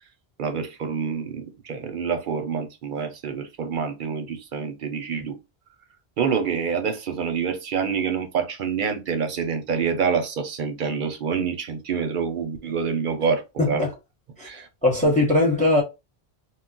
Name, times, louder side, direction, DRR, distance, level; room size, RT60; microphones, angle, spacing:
voice 1, 0.4-5.4 6.2-13.8 14.4-14.7 15.0-15.1, right 6 dB, 60° right, 0.7 m, -27 dB
voice 2, 13.6-13.9 14.4-14.5 14.8-15.8, left 2 dB, 10° left, 0.7 m, -20 dB
2.3 x 2.1 x 3.7 m
omnidirectional pair, 1.1 m